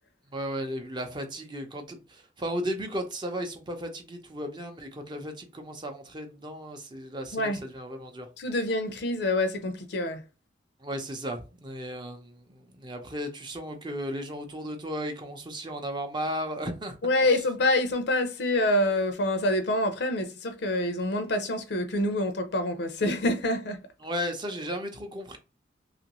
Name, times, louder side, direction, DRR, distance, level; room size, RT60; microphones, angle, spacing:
voice 1, 0.3-8.3 10.8-17.0 24.0-25.4, equal, 25° right, 0.6 m, -35 dB
voice 2, 8.4-10.2 17.0-23.8, left 1 dB, 65° left, 0.5 m, -26 dB
2.9 x 2.5 x 2.9 m
head